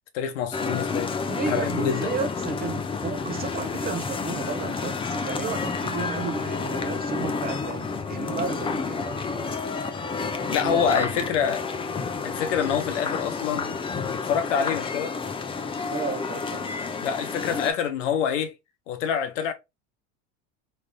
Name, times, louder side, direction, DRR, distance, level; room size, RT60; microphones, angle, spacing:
voice 1, 0.1-1.1 1.5-2.1 10.5-11.6 12.2-15.1 17.0-18.5 18.9-19.5, left 7 dB, 80° left, 0.9 m, -26 dB
sound 1, 0.5-17.7, left 4 dB, 15° left, 0.5 m, -30 dB
voice 2, 1.3-9.5 10.3-11.3 15.9-16.7, right 5 dB, 25° right, 0.7 m, -33 dB
3.5 x 3.3 x 2.2 m
supercardioid pair, 105°, 36 cm